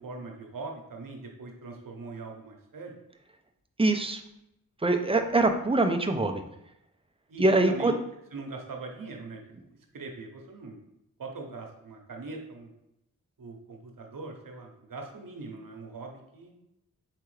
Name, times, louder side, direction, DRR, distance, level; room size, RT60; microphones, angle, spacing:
voice 1, 0.0-3.0 7.3-7.9 8.3-9.4 9.9-10.8 11.2-12.7 13.4-16.5, right 3 dB, 70° right, 2 dB, 1.0 m, -41 dB
voice 2, 3.8-4.2 4.8-6.4 7.4-7.9, right 2 dB, 15° right, 5 dB, 0.6 m, -23 dB
4.7 x 3.3 x 3.2 m, 0.83 s
cardioid pair, 40°, 34 cm